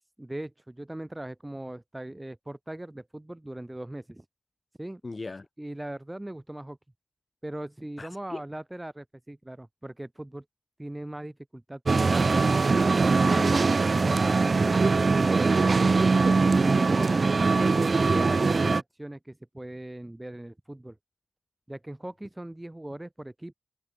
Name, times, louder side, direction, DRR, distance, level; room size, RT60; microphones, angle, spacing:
voice 1, 0.2-4.2 4.8-5.0 5.6-6.8 7.4-10.4 10.8-12.4 14.0-15.5 16.4-17.1 18.1-21.0 21.7-23.5, right 1 dB, 15° right, 2.5 m, -39 dB
voice 2, 5.0-5.5 8.0-8.4 13.2-13.7 17.0-17.2, left 3 dB, 45° left, 7.0 m, -40 dB
sound 1, 11.9-18.8, right 4 dB, 55° right, 0.9 m, -22 dB
cardioid pair, 60°, 0 cm